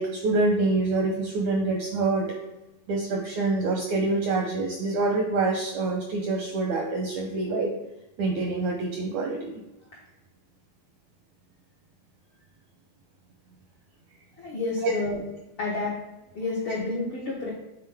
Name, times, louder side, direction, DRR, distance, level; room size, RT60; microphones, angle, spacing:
voice 1, 0.0-2.4 2.9-7.7 8.2-9.6 14.8-14.9, right 3 dB, 80° right, 1 dB, 1.7 m, -26 dB
voice 2, 14.4-15.2 15.6-15.9 16.3-17.5, left 3 dB, 75° left, -5 dB, 1.2 m, -29 dB
9.2 x 3.9 x 3.4 m, 0.97 s
omnidirectional pair, 4.2 m